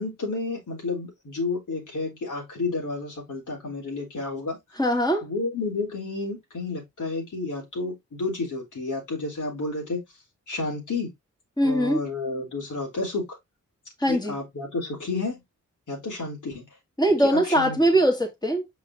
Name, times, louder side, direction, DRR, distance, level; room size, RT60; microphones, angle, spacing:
voice 1, 0.0-4.6 5.2-10.0 10.5-11.1 11.6-13.4 14.1-15.4 15.9-16.7 17.2-17.8, left 3 dB, 70° left, 3.8 m, -31 dB
voice 2, 4.8-5.3 11.6-12.0 14.0-14.4 17.0-18.6, right 1 dB, 15° left, 2.2 m, -21 dB
6.5 x 5.5 x 2.6 m
cardioid pair, 50°, 32 cm